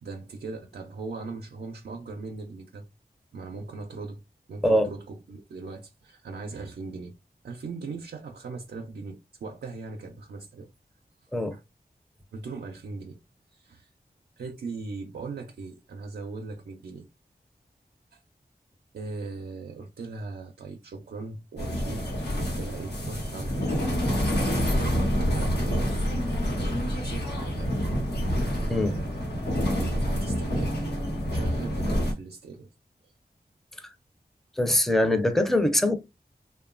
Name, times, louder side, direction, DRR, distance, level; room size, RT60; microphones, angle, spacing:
voice 1, 0.0-2.9 3.3-4.2 4.5-7.2 7.4-10.7 11.2-11.6 12.3-13.2 13.5-13.9 14.4-17.1 18.1-18.2 18.9-22.1 22.4-24.0 24.3-25.9 26.5-27.7 28.2-29.2 29.7-30.9 31.3-32.7, right 3 dB, 90° right, 0.4 m, -39 dB
sound 1, 21.6-32.1, equal, 85° left, 1.0 m, -27 dB
voice 2, 34.6-36.0, left 1 dB, ahead, 0.5 m, -22 dB
2.9 x 2.2 x 2.4 m
wide cardioid pair, 55°, 17 cm